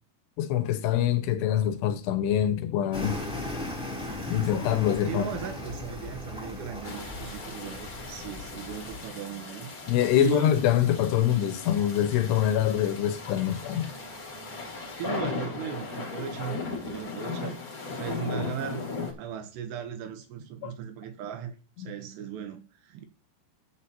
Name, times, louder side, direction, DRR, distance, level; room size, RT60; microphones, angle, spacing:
voice 1, 0.4-3.2 4.3-5.3 9.9-13.9 20.6-20.7 21.8-21.9, left 11 dB, 80° left, 2.8 m, -25 dB
sound 1, 2.1-17.0, right 2 dB, 50° right, 3.5 m, -49 dB
sound 2, 2.9-9.1, left 2 dB, ahead, 2.2 m, -38 dB
voice 2, 5.1-9.7 10.2-10.6 14.9-17.6 17.9-18.9 19.2-23.1, right 9 dB, 75° right, 3.1 m, -37 dB
sound 3, 6.8-19.1, left 4 dB, 35° left, 1.4 m, -38 dB
13.0 x 8.1 x 2.9 m
omnidirectional pair, 4.9 m